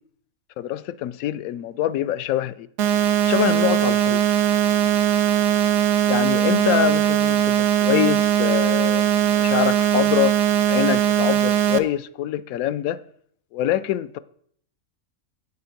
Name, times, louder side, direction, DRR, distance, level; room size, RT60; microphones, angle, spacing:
voice 1, 0.6-2.7 3.2-4.4 6.1-10.4 10.7-13.0 13.5-14.2, left 12 dB, 80° left, 1.0 m, -25 dB
sound 1, 2.8-11.8, right 10 dB, 60° right, 0.9 m, -20 dB
8.4 x 7.7 x 5.8 m
omnidirectional pair, 1.5 m